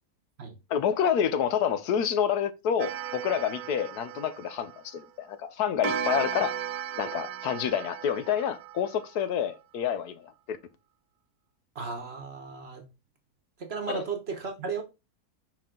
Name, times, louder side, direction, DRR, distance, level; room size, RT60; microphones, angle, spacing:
voice 1, 0.7-6.5 7.0-10.6 13.9-14.0, left 8 dB, 80° left, 1.2 m, -28 dB
Clock, 2.8-5.1 5.8-9.2, right 8 dB, 70° right, 1.1 m, -35 dB
voice 2, 11.7-12.8 13.6-14.8, right 5 dB, 45° right, 1.0 m, -35 dB
5.3 x 4.7 x 3.7 m
omnidirectional pair, 1.7 m